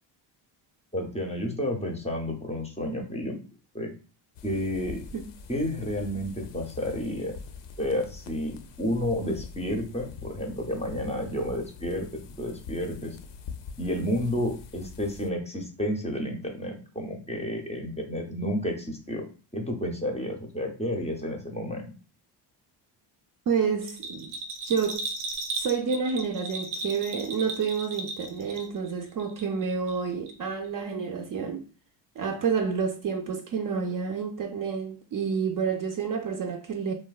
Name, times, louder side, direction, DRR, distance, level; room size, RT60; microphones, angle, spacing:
voice 1, 0.9-3.4 3.7-3.9 4.4-5.0 5.5-7.4 7.8-13.2 13.8-19.2 19.5-21.9, left 1 dB, 15° left, 0.6 m, -31 dB
sound 1, 4.3-15.3, left 5 dB, 60° left, 0.5 m, -44 dB
voice 2, 23.5-24.3 24.6-25.1 25.6-31.6 32.2-36.9, right 6 dB, 45° right, 0.5 m, -29 dB
Bell, 23.8-28.9 29.2-30.0 30.3-30.4, right 3 dB, 85° right, 0.7 m, -36 dB
3.1 x 2.2 x 2.3 m
cardioid pair, 80°, 49 cm